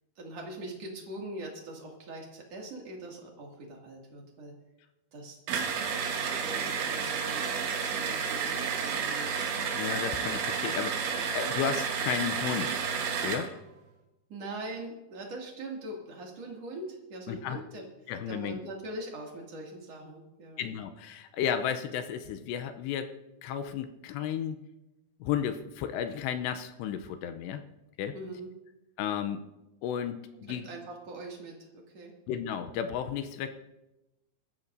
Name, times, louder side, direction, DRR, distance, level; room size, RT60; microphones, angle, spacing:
voice 1, 0.2-4.5 5.1-5.4 5.9-7.6 7.9-9.4 14.3-20.6 28.1-28.5 30.5-32.1, right 1 dB, 40° right, -1 dB, 2.8 m, -42 dB
sound 1, 5.5-13.5, right 6 dB, 75° right, 3.6 m, -31 dB
voice 2, 9.8-12.8 13.2-13.5 17.3-17.6 18.1-18.6 20.6-23.1 23.4-24.6 25.2-27.6 28.0-28.2 29.0-29.4 29.8-30.7 32.3-33.5, left 8 dB, 80° left, 9 dB, 2.7 m, -33 dB
24.0 x 13.0 x 2.7 m, 0.98 s
omnidirectional pair, 5.4 m